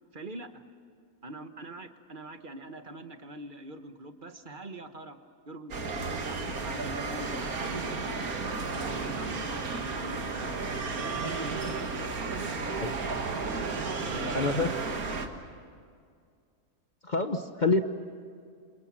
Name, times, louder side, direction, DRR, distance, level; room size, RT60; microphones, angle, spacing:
voice 1, 0.1-0.6 1.2-5.2 5.5-8.1 8.7-10.6 10.9-12.7 13.3-14.7, right 2 dB, 35° right, 8 dB, 1.4 m, -43 dB
sound 1, 5.7-15.3, right 4 dB, 70° right, 2.2 m, -33 dB
voice 2, 14.2-14.7 17.1-17.8, left 3 dB, 35° left, 7 dB, 1.1 m, -26 dB
28.5 x 27.5 x 7.5 m, 2.2 s
omnidirectional pair, 1.6 m